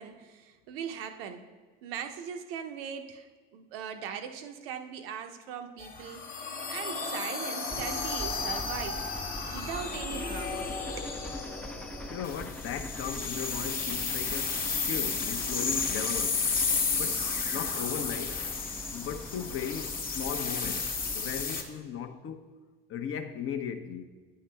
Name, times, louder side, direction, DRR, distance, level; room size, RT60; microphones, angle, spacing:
voice 1, 0.0-1.4 1.8-9.1 9.5-10.7 11.0-11.1, right 8 dB, 70° right, 0.7 m, -40 dB
sound 1, 5.8-21.6, left 4 dB, 30° left, 1.3 m, -33 dB
sound 2, 7.7-21.4, equal, 5° left, 0.3 m, -43 dB
voice 2, 12.1-16.4 17.0-17.2 17.5-18.4 18.9-22.5 22.9-24.0, left 8 dB, 45° left, 0.8 m, -37 dB
9.3 x 5.6 x 3.3 m
hypercardioid pair, 70°, 30 cm